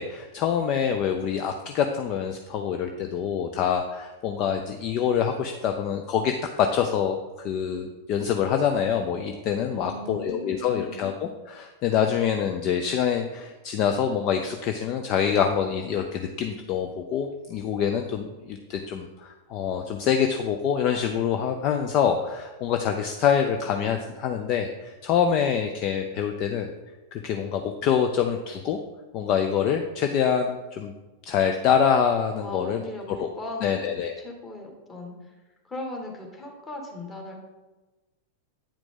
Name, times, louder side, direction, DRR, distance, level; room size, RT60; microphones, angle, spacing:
voice 1, 0.0-7.2 7.4-26.7 27.1-28.8 29.1-30.9 31.3-32.8 33.2-33.3 33.6-34.1, left 7 dB, 40° left, 5 dB, 0.5 m, -25 dB
voice 2, 9.6-11.0 32.4-35.3 35.6-37.4, left 2 dB, 20° left, 0 dB, 1.7 m, -38 dB
8.6 x 4.8 x 3.8 m, 1.2 s
figure-of-eight pair, 90°, 0 cm